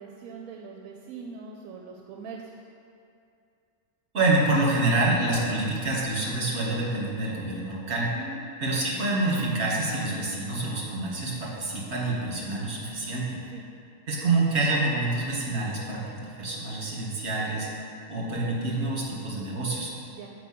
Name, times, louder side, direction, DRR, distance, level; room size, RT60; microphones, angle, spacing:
voice 1, 0.0-2.5 8.1-8.4 13.5-13.7 20.1-20.3, right 5 dB, 85° right, 1 dB, 1.1 m, -41 dB
voice 2, 4.1-8.2 8.6-13.4 14.1-17.7 18.1-19.9, right 2 dB, 50° right, -5 dB, 1.9 m, -27 dB
6.9 x 4.8 x 6.0 m, 2.5 s
omnidirectional pair, 1.5 m